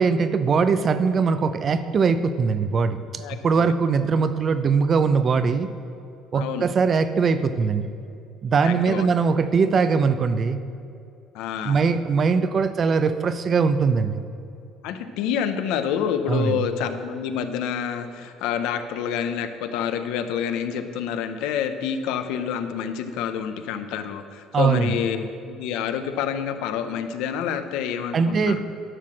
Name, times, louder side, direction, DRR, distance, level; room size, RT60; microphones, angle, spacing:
voice 1, 0.0-5.7 6.3-7.9 8.4-10.6 11.6-14.2 16.3-16.5 24.5-24.9 28.1-28.6, right 5 dB, 40° right, 11 dB, 0.5 m, -21 dB
voice 2, 3.2-3.7 6.3-6.7 8.6-9.1 11.3-11.8 14.8-28.6, left 8 dB, 85° left, 9 dB, 0.7 m, -28 dB
11.0 x 5.9 x 6.3 m, 2.5 s
cardioid pair, 120°, 0 cm